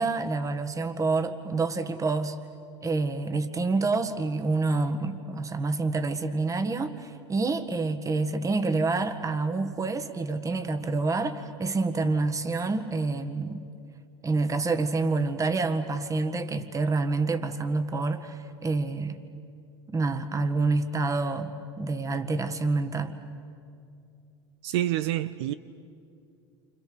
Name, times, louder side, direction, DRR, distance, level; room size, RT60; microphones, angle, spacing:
voice 1, 0.0-2.4 2.8-13.7 14.2-19.2 19.9-23.2, right 3 dB, 20° right, 1.7 m, -27 dB
voice 2, 24.6-25.5, right 14 dB, 70° right, 0.6 m, -27 dB
28.5 x 26.5 x 7.0 m
hypercardioid pair, 90°, 15 cm